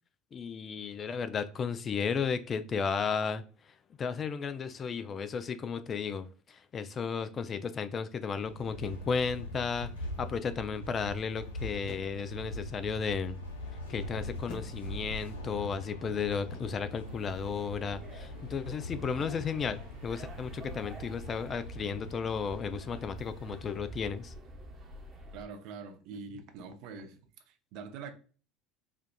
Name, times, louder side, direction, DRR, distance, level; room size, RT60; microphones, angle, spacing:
voice 1, 0.3-3.4 4.0-6.3 6.7-9.9 10.2-13.4 13.9-24.3, left 6 dB, 35° left, 0.4 m, -34 dB
sound 1, 8.4-24.1, left 1 dB, 85° left, 0.6 m, -42 dB
sound 2, 11.8-12.4 14.5-15.2 16.5-17.0 19.2-19.6, left 3 dB, 60° left, 1.2 m, -49 dB
sound 3, 17.0-25.5, right 1 dB, 35° right, 0.9 m, -48 dB
voice 2, 25.3-27.2 27.5-28.1, right 5 dB, 60° right, 0.5 m, -44 dB
4.4 x 2.3 x 2.2 m
figure-of-eight pair, 70°, 0 cm